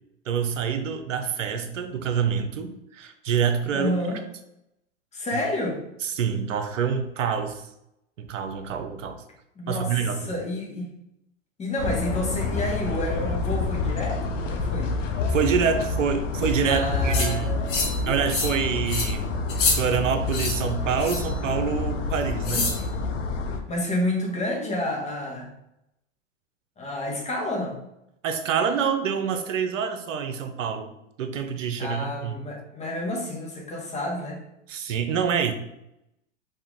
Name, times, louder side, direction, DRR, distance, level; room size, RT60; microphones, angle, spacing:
voice 1, 0.3-4.0 5.3-5.4 6.0-7.6 8.2-9.2 9.7-10.4 15.3-17.6 18.1-19.4 19.8-22.7 28.2-30.9 31.2-32.4 34.7-35.5, right 7 dB, 80° right, 8 dB, 0.7 m, -26 dB
voice 2, 3.7-4.2 5.1-5.8 9.6-9.9 10.2-10.9 11.6-15.0 16.7-17.9 23.7-25.5 26.8-27.8 31.8-34.4, left 1 dB, 20° left, -1 dB, 1.2 m, -29 dB
sound 1, 11.8-23.6, left 3 dB, 80° left, 0.8 m, -28 dB
sound 2, 17.1-17.3 17.7-18.0 18.3-18.6 18.9-19.1 19.5-19.8 20.3-20.5 21.0-21.3 22.4-22.8, left 4 dB, 35° left, 1.2 m, -26 dB
5.2 x 2.7 x 3.7 m, 0.84 s
hypercardioid pair, 110°, 37 cm